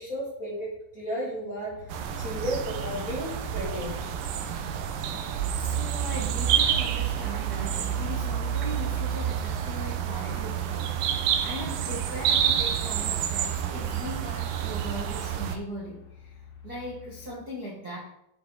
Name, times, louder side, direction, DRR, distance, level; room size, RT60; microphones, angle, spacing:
voice 1, 0.0-4.0, equal, 25° left, -6 dB, 2.3 m, -34 dB
sound 1, 1.7-17.3, left 6 dB, 65° left, 3.0 m, -49 dB
sound 2, 1.9-15.6, right 9 dB, 80° right, 2.0 m, -28 dB
voice 2, 5.5-16.3 16.6-18.0, equal, 60° right, -5 dB, 0.9 m, -39 dB
8.5 x 7.2 x 3.9 m, 0.81 s
omnidirectional pair, 4.7 m